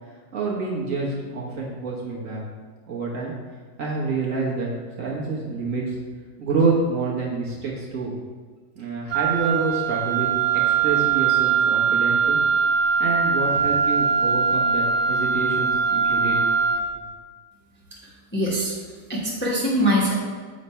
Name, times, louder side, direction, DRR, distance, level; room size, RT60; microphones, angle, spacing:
voice 1, 0.3-2.4 2.9-3.3 3.8-4.7 5.0-6.0 6.4-8.1 8.8-10.3 10.6-12.4 13.0-16.4, right 3 dB, 50° right, -3 dB, 1.3 m, -27 dB
Wind instrument woodwind instrument, 9.1-16.9, right 6 dB, 75° right, 0.6 m, -21 dB
voice 2, 18.3-18.7 19.1-20.1, equal, 10° left, -5 dB, 0.8 m, -22 dB
7.2 x 3.2 x 5.4 m, 1.5 s
omnidirectional pair, 1.9 m